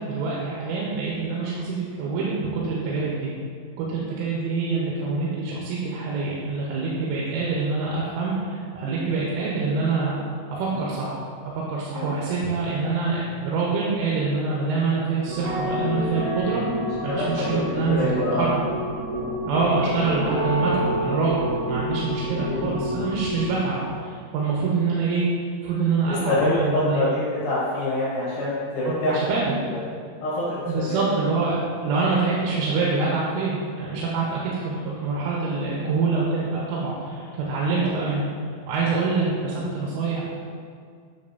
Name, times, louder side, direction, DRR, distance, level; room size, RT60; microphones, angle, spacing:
voice 1, 0.0-3.3 3.8-10.2 10.5-11.2 11.7-16.6 17.0-18.6 19.5-25.2 25.6-27.1 29.2-29.6 30.7-38.3 38.7-40.3, right 4 dB, 90° right, -5 dB, 3.4 m, -25 dB
sound 1, 15.3-23.5, equal, 60° right, 2.2 m, -28 dB
voice 2, 17.1-18.5 22.5-23.0 26.3-29.4 29.7-29.8 30.2-30.6 30.9-31.0 37.7-38.1, left 1 dB, 75° left, -9 dB, 3.6 m, -26 dB
8.8 x 6.1 x 2.7 m, 2.2 s
omnidirectional pair, 5.5 m